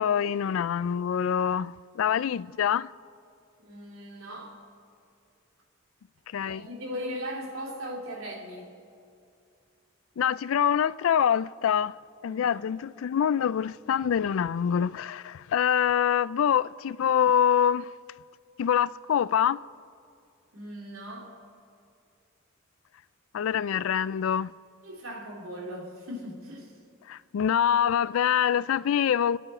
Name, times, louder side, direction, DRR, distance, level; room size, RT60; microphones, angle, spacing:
voice 1, 0.0-2.9 6.3-6.6 10.2-11.9 12.2-17.9 18.6-19.6 23.3-24.5 27.1-29.4, left 8 dB, 75° left, 0.3 m, -25 dB
voice 2, 3.6-4.6 6.4-8.7 12.3-12.6 20.5-21.3 24.8-26.7, equal, 85° right, 2.9 m, -38 dB
28.5 x 9.9 x 4.3 m
head